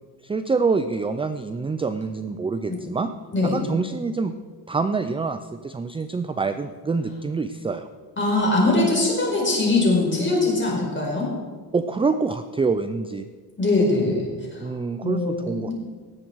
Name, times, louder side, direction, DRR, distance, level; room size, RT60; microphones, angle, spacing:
voice 1, 0.2-3.1 3.4-4.3 4.7-7.9 11.7-13.3 14.6-15.7, right 4 dB, 15° right, 10 dB, 0.3 m, -26 dB
voice 2, 8.2-11.3 13.6-14.7 15.0-15.7, left 2 dB, 30° left, -3 dB, 4.7 m, -22 dB
18.5 x 7.8 x 4.6 m, 1.5 s
cardioid pair, 125°, 41 cm